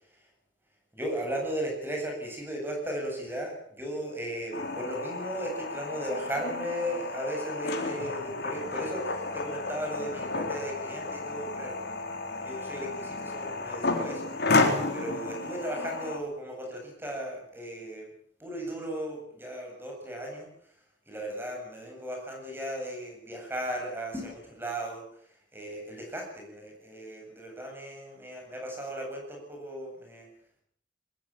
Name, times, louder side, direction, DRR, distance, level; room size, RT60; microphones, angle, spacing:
voice 1, 0.9-14.2 14.9-18.1 18.4-20.5 21.1-25.0 25.5-30.3, right 1 dB, 15° right, 1 dB, 7.9 m, -36 dB
sound 1, 4.5-16.2, left 3 dB, 60° left, 4.0 m, -32 dB
22.0 x 20.5 x 7.5 m, 0.63 s
head